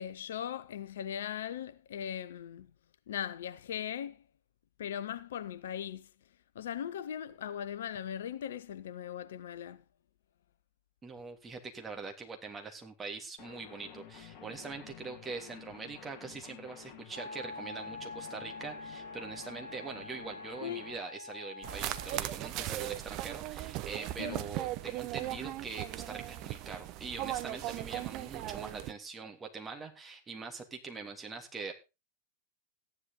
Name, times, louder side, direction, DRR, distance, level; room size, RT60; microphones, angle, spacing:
voice 1, 0.0-2.7 3.1-4.2 4.8-6.1 6.5-9.8 20.6-20.9 24.2-24.4, left 9 dB, 60° left, 0.8 m, -39 dB
voice 2, 11.0-31.7, right 4 dB, 15° right, 3.1 m, -43 dB
sound 1, 13.4-21.0, left 8 dB, 40° left, 2.1 m, -51 dB
Wind instrument woodwind instrument, 17.1-22.3, left 3 dB, 70° right, 1.5 m, -45 dB
sound 2, 21.6-28.9, right 14 dB, 40° right, 1.0 m, -38 dB
14.0 x 10.5 x 4.0 m
figure-of-eight pair, 90°, 0 cm